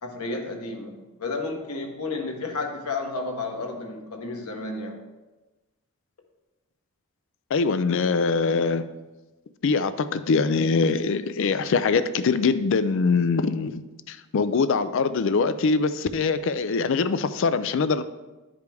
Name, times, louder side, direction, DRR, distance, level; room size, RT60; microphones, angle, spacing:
voice 1, 0.0-5.0, left 3 dB, 90° left, 2 dB, 1.2 m, -32 dB
voice 2, 7.5-8.9 9.6-13.8 14.1-18.0, left 4 dB, 60° left, 12 dB, 0.4 m, -23 dB
10.5 x 5.0 x 3.4 m, 1.1 s
head